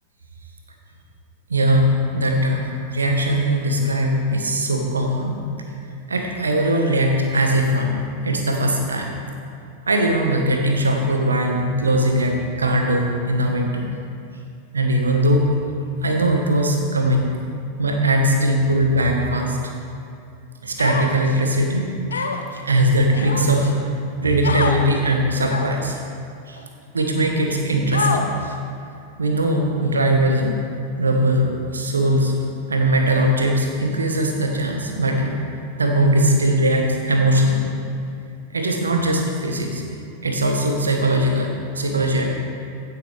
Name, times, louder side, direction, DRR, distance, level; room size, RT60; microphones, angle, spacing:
voice 1, 1.5-5.3 6.1-8.0 8.2-9.1 9.9-13.8 14.7-15.4 16.0-17.3 17.8-19.6 20.6-21.9 22.7-23.7 24.2-25.9 26.5-26.6 26.9-28.3 29.2-30.5 31.0-32.3 32.7-35.4 35.8-37.7 38.5-39.8 40.2-41.5 41.8-42.2, right 1 dB, 75° right, 2 dB, 1.3 m, -20 dB
Human voice, 20.8-21.4 22.1-22.6 23.1-23.7 24.4-24.8 25.4-25.9 26.6-26.7 27.9-28.5, left 4 dB, 70° left, 0.8 m, -26 dB
16.0 x 7.6 x 3.4 m, 2.5 s
figure-of-eight pair, 90°, 0 cm